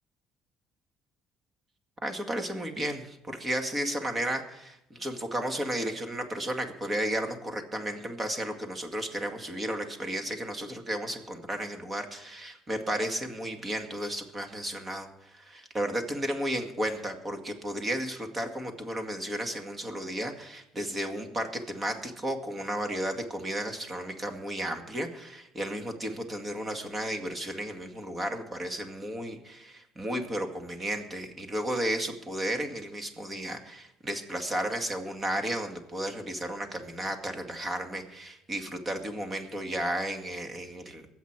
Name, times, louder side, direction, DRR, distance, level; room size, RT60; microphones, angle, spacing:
voice 1, 2.0-41.1, right 1 dB, 25° right, 5 dB, 2.1 m, -33 dB
22.5 x 8.3 x 4.7 m, 0.86 s
cardioid pair, 105°, 0 cm